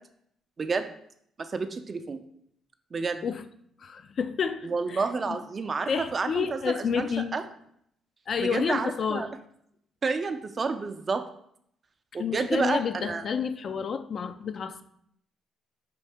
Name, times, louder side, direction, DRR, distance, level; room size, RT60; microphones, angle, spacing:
voice 1, 0.6-0.9 1.4-2.2 2.9-3.2 4.6-7.4 8.4-9.3 10.0-11.2 12.1-13.2, right 4 dB, 40° right, 0.5 m, -30 dB
voice 2, 3.8-5.4 5.9-7.3 8.3-9.3 12.2-14.8, left 6 dB, 55° left, 0.3 m, -30 dB
5.2 x 2.7 x 3.4 m
supercardioid pair, 60°, 0 cm